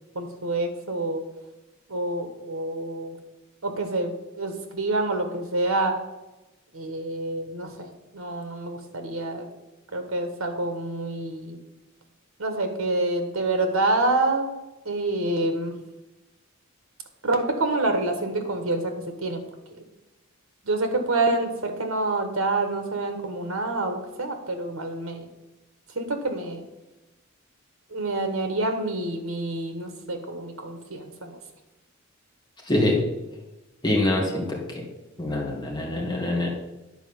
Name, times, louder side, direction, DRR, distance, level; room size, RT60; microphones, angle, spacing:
voice 1, 0.1-1.2 1.9-3.2 3.6-5.9 6.7-7.9 8.1-9.5 9.9-11.6 12.4-14.5 14.8-15.7 17.2-18.9 19.2-19.4 20.6-25.3 25.9-26.6 27.9-31.4, right 2 dB, 70° right, 6 dB, 1.5 m, -27 dB
voice 2, 32.7-33.0 33.8-34.6 35.2-36.5, left 1 dB, 20° left, -2 dB, 2.2 m, -24 dB
10.5 x 4.6 x 7.2 m, 1.0 s
head